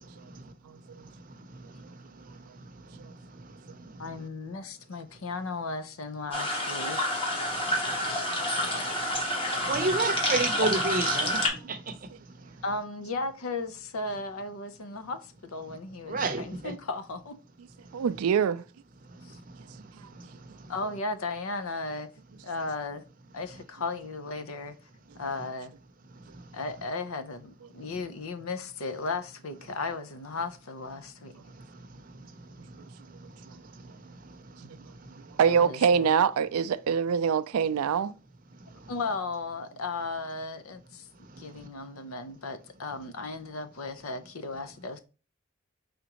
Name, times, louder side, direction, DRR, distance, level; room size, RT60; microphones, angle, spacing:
voice 1, 0.7-1.1 3.0-3.1 17.9-18.6 35.4-38.1, right 7 dB, 85° right, 0.4 m, -24 dB
voice 2, 4.0-7.2 12.6-17.3 19.2-19.4 20.7-22.1 22.4-23.0 23.3-24.7 25.1-25.7 26.5-31.3 35.4-36.1 38.9-45.0, left 3 dB, 80° left, 0.7 m, -35 dB
sound 1, 6.3-11.5, left 1 dB, 25° left, 1.1 m, -28 dB
voice 3, 9.6-11.4 11.7-11.8 16.1-16.7, right 3 dB, 40° right, 0.6 m, -28 dB
5.1 x 3.5 x 2.9 m
head